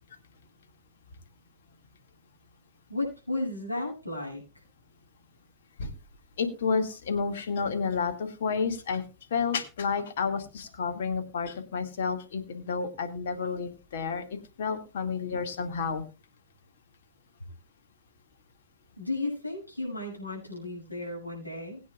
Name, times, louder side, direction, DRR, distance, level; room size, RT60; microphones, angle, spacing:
voice 1, 2.9-4.6 19.0-21.8, left 2 dB, 85° left, -2 dB, 6.9 m, -34 dB
voice 2, 6.4-9.0 9.3-14.2 14.6-16.0, left 5 dB, 60° left, 6 dB, 2.1 m, -30 dB
21.0 x 9.3 x 2.4 m, 0.29 s
figure-of-eight pair, 90°, 0 cm